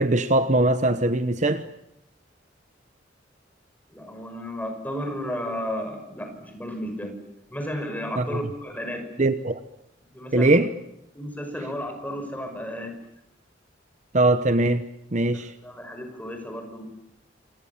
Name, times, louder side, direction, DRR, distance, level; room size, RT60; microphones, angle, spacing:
voice 1, 0.0-1.6 8.2-8.3 9.2-9.6 10.3-10.7 14.1-14.8 15.1-15.5, right 2 dB, 40° right, 1.0 m, -21 dB
voice 2, 3.9-7.1 7.5-9.1 10.1-10.6 11.1-12.9 15.6-16.9, equal, 10° left, 5.9 m, -33 dB
27.5 x 27.0 x 7.3 m
head